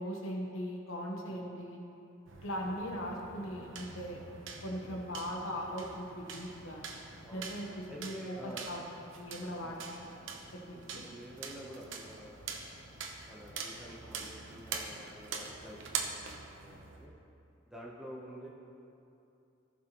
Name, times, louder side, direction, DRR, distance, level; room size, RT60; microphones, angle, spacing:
voice 1, 0.0-1.8 2.4-4.2 4.6-6.8 7.3-8.8 9.2-10.1 10.7-11.0, equal, 80° left, 0 dB, 1.2 m, -39 dB
sound 1, 2.3-17.0, right 5 dB, 65° right, 0.9 m, -44 dB
voice 2, 7.9-8.7 9.6-9.8 10.9-12.4 13.3-17.1 17.7-18.5, equal, 5° right, -5 dB, 0.9 m, -49 dB
18.0 x 6.0 x 3.1 m, 2.7 s
head